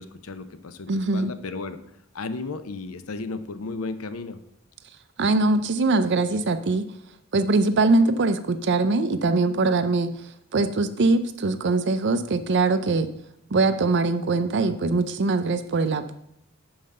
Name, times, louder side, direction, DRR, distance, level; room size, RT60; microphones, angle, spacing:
voice 1, 0.0-1.8 2.1-4.4, left 3 dB, 85° left, 11 dB, 0.7 m, -34 dB
voice 2, 0.9-1.3 5.2-6.8 7.3-10.1 10.5-13.1 13.5-16.1, right 3 dB, 55° right, 11 dB, 0.6 m, -22 dB
5.6 x 5.1 x 6.7 m, 0.78 s
head